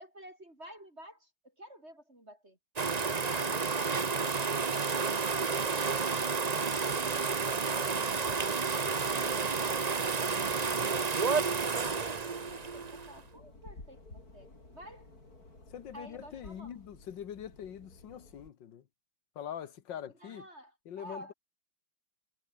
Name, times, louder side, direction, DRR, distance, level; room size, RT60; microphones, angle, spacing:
voice 1, 0.0-2.6 9.1-15.1 15.9-16.8 20.2-21.3, right 1 dB, 30° right, 5.4 m, -51 dB
sound 1, 2.8-13.2, right 5 dB, 50° right, 0.5 m, -31 dB
sound 2, 12.3-18.5, left 2 dB, 40° left, 6.2 m, -53 dB
voice 2, 15.7-18.8 19.4-20.5 20.9-21.3, left 9 dB, 60° left, 1.9 m, -43 dB
omnidirectional pair, 2.4 m